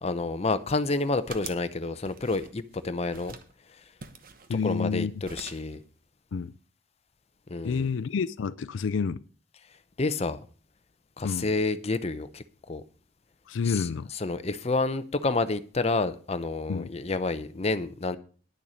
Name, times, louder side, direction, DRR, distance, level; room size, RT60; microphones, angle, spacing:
voice 1, 0.0-3.4 3.7-3.8 4.6-5.8 7.5-7.9 10.0-10.4 11.2-12.8 13.6-18.2, left 3 dB, 35° left, 0.6 m, -29 dB
sound 1, 0.6-1.7 2.0-2.8 3.1-3.5 4.0-5.0 5.2-5.8, right 5 dB, 45° right, 1.0 m, -45 dB
voice 2, 4.5-5.1 6.3-6.5 7.6-9.2 11.2-11.5 13.5-14.1 16.7-16.9, left 5 dB, 70° left, 0.4 m, -29 dB
10.5 x 6.9 x 6.3 m
head